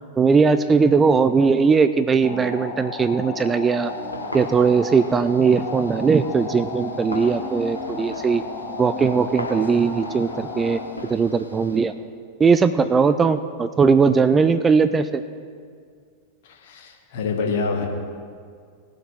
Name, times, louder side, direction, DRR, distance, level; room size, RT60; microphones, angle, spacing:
voice 1, 0.2-3.9 4.3-8.4 8.8-10.8 11.1-11.9 12.4-15.2, right 5 dB, 20° right, 12 dB, 0.4 m, -19 dB
sound 1, 2.2-10.8, left 4 dB, 40° left, 2.1 m, -33 dB
sound 2, 3.8-11.8, left 1 dB, 80° left, 1.2 m, -39 dB
voice 2, 16.4-17.9, left 4 dB, 55° left, 2 dB, 1.7 m, -26 dB
19.0 x 6.7 x 4.6 m, 2.1 s
figure-of-eight pair, 90°, 0 cm